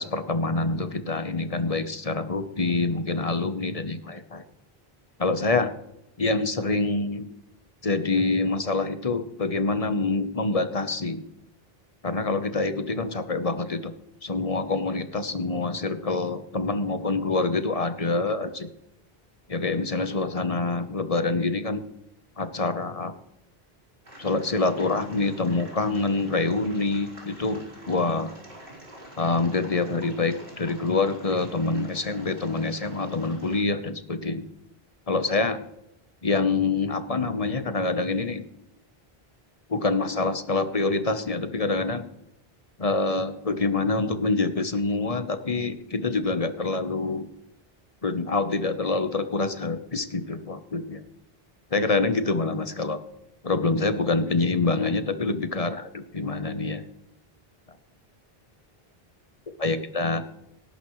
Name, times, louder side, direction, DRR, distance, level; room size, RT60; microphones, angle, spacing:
voice 1, 0.0-4.4 5.2-5.7 6.2-7.3 7.8-11.2 12.0-13.9 14.2-18.7 19.5-21.8 22.4-23.1 24.2-28.3 29.2-34.5 35.1-35.6 36.2-38.4 39.7-42.0 42.8-47.2 48.0-51.0 51.7-53.0 53.4-56.8 59.6-60.3, left 3 dB, 35° left, 9 dB, 1.1 m, -26 dB
sound 1, 24.0-33.6, right 1 dB, 60° right, 4.9 m, -46 dB
19.0 x 11.0 x 3.2 m, 0.80 s
omnidirectional pair, 1.0 m